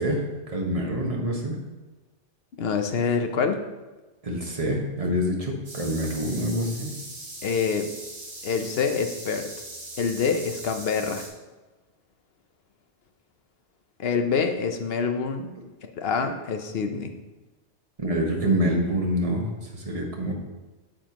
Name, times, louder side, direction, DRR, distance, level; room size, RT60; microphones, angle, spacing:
voice 1, 0.0-1.6 4.2-6.9 18.0-20.3, equal, 30° right, -1 dB, 1.4 m, -26 dB
voice 2, 2.6-3.6 7.4-7.9 8.4-9.5 10.0-11.2 14.0-15.5 16.0-17.1, left 5 dB, 60° left, 6 dB, 0.9 m, -26 dB
sound 1, 5.6-11.3, right 2 dB, 60° right, 2.1 m, -40 dB
8.8 x 7.4 x 3.0 m, 1.2 s
omnidirectional pair, 1.2 m